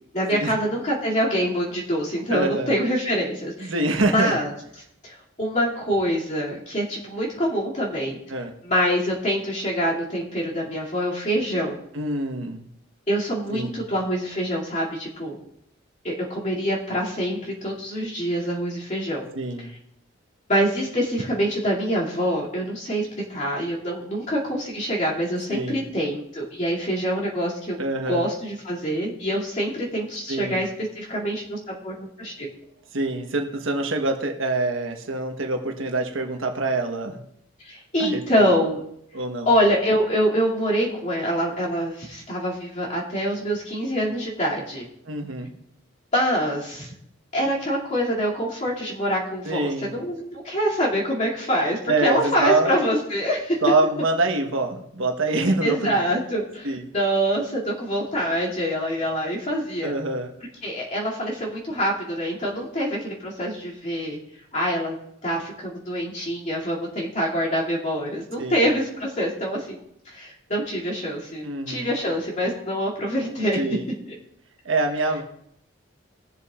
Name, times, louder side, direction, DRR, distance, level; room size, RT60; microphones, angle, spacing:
voice 1, 0.1-3.7 4.1-4.5 5.0-8.2 8.6-11.8 13.1-15.4 16.0-19.2 20.5-27.8 28.1-30.7 30.9-32.5 37.6-38.8 39.5-44.9 46.1-46.9 47.3-53.6 55.6-59.9 60.6-64.2 64.5-64.9 65.2-69.8 70.1-73.6 74.1-74.2, equal, 35° left, -4 dB, 2.6 m, -25 dB
voice 2, 2.3-2.7 3.6-4.4 8.3-8.5 11.9-12.7 13.5-13.8 19.3-19.7 25.5-25.8 27.8-28.3 30.3-30.6 32.9-37.2 38.0-38.5 39.1-39.5 45.0-45.5 49.4-49.9 51.9-52.7 53.6-56.0 56.6-56.8 59.8-60.3 68.4-68.7 71.4-71.9 73.6-73.9 74.6-75.2, right 2 dB, 80° right, 4 dB, 1.3 m, -25 dB
19.5 x 7.0 x 2.5 m, 0.74 s
head